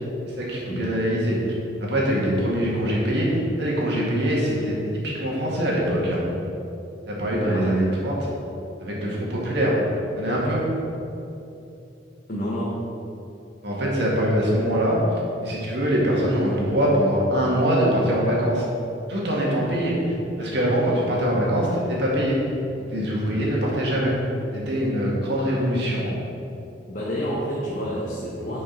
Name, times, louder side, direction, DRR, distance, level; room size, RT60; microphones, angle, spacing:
voice 1, 0.4-1.5 1.9-6.2 7.1-8.3 8.8-9.8 10.2-10.6 13.6-15.0 15.4-18.6 19.1-22.4 22.9-24.1 24.5-26.1, equal, 65° right, -4 dB, 2.0 m, -23 dB
voice 2, 7.4-8.1 12.3-12.8 23.2-23.6 26.9-28.6, equal, 50° left, -7 dB, 1.3 m, -30 dB
10.5 x 5.4 x 4.0 m, 2.8 s
head